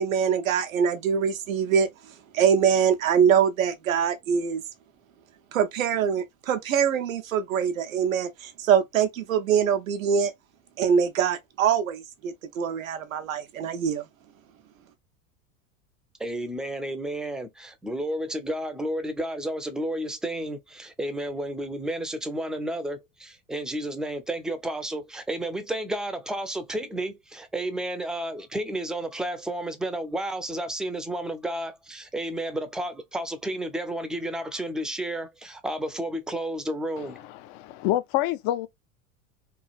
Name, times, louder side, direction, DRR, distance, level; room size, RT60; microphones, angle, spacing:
voice 1, 0.0-1.9 2.3-4.6 5.5-10.3 10.8-14.0, right 7 dB, 90° right, 0.6 m, -24 dB
voice 2, 16.2-37.2, right 1 dB, ahead, 0.4 m, -31 dB
voice 3, 37.2-38.7, left 14 dB, 50° left, 0.5 m, -27 dB
3.1 x 2.4 x 2.3 m
hypercardioid pair, 90°, 39 cm